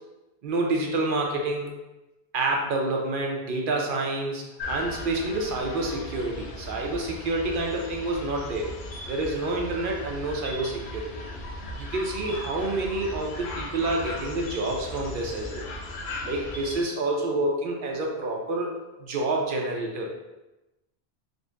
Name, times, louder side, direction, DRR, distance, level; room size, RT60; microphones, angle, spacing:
voice 1, 0.4-1.7 2.3-8.7 9.1-11.2 11.8-15.6 16.2-18.7 19.0-20.1, right 2 dB, 60° right, 0 dB, 0.7 m, -28 dB
sound 1, 4.6-16.8, left 1 dB, 80° left, 0.9 m, -37 dB
3.8 x 2.1 x 3.5 m, 1.0 s
omnidirectional pair, 1.1 m